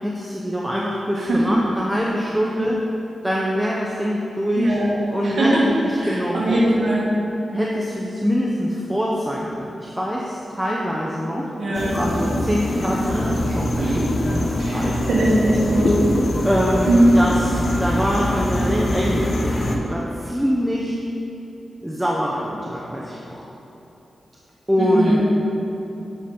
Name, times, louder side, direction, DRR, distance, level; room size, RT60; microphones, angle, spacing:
voice 1, 0.0-2.8 3.2-4.7 5.1-5.7 6.1-6.9 7.5-15.0 16.5-17.5 17.8-21.0 21.8-23.4 24.7-25.2, equal, 5° right, -4 dB, 0.6 m, -24 dB
voice 2, 1.2-1.6 4.5-4.9 5.2-5.7 6.0-7.1 11.6-12.0 13.8-14.0 14.6-16.0 16.9-17.3 24.8-25.3, right 1 dB, 65° right, -6 dB, 1.9 m, -20 dB
sound 1, 11.7-19.8, left 1 dB, 45° left, 0.7 m, -23 dB
7.4 x 6.8 x 4.3 m, 3.0 s
wide cardioid pair, 165°, 0 cm